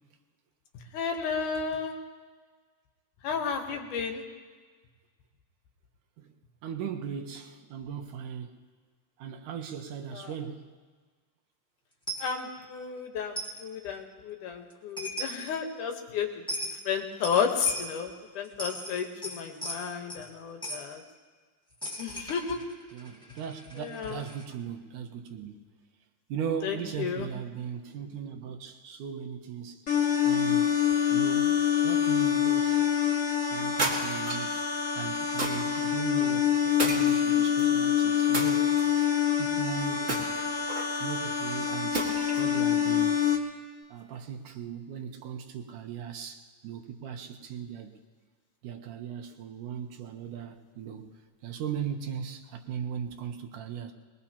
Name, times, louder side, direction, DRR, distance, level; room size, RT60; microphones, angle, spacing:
voice 1, 0.9-1.9 3.2-4.2 10.1-10.3 12.2-16.3 16.9-21.0 22.0-22.6 23.8-24.2 26.6-27.3, left 6 dB, 75° left, 4 dB, 2.7 m, -32 dB
voice 2, 6.6-8.5 9.2-10.7 22.9-25.6 26.3-29.8 30.2-30.7 31.1-31.5 31.8-32.8 33.5-34.7 34.9-38.8 39.4-40.1 41.0-42.1 42.4-43.2 43.9-48.0 48.6-51.1 51.4-53.9, right 8 dB, 80° right, 4 dB, 2.5 m, -38 dB
Coin (dropping), 12.1-12.3 13.3-13.6 14.7-14.8 15.0-15.5 16.5-16.8 17.2-18.0 18.4-20.3 20.6-20.9 21.8-24.4, right 1 dB, 5° left, 1.0 m, -38 dB
sound 1, 29.9-43.4, left 9 dB, 45° left, 1.0 m, -26 dB
sound 2, 33.8-34.5 35.4-35.8 36.8-37.6 38.3-39.1 40.1-41.0 41.9-42.5, right 2 dB, 25° right, 1.7 m, -32 dB
21.5 x 21.0 x 2.9 m, 1.5 s
omnidirectional pair, 3.7 m